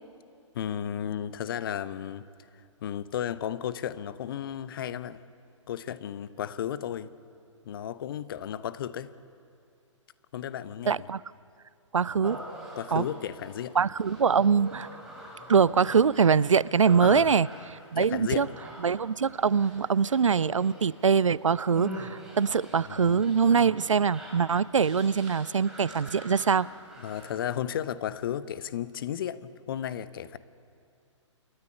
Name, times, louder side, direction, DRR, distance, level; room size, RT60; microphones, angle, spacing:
voice 1, 0.5-2.3 2.8-5.2 5.7-7.1 7.6-9.1 10.3-11.1 12.8-13.8 17.0-17.3 17.9-18.6 22.9-23.2 27.0-30.4, left 10 dB, 45° left, 15 dB, 0.9 m, -34 dB
voice 2, 10.9-11.2 11.9-12.4 12.9-13.0 13.8-14.9 15.5-17.5 17.9-18.5 18.8-26.7, right 6 dB, 80° right, 22 dB, 0.4 m, -23 dB
Human voice, 12.2-27.4, right 1 dB, 5° right, 6.1 m, -44 dB
28.0 x 12.0 x 9.8 m, 2.4 s
figure-of-eight pair, 120°, 16 cm